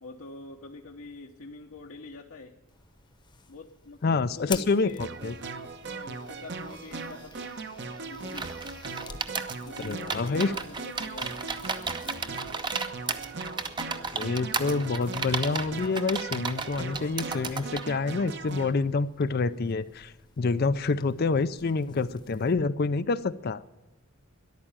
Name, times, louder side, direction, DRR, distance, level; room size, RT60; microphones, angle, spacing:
voice 1, 0.0-2.5 3.5-5.1 5.8-7.6 8.0-8.5 9.6-12.4, left 3 dB, 65° left, 1 dB, 1.0 m, -45 dB
sound 1, 2.7-22.6, left 5 dB, 20° left, 0.9 m, -49 dB
voice 2, 4.0-5.3 9.8-10.5 14.1-23.6, left 4 dB, 45° left, 13 dB, 0.4 m, -27 dB
sound 2, 5.0-18.7, right 4 dB, 50° right, 1.0 m, -39 dB
sound 3, 8.3-17.9, right 4 dB, 20° right, 0.7 m, -33 dB
13.5 x 11.5 x 8.7 m, 1.1 s
head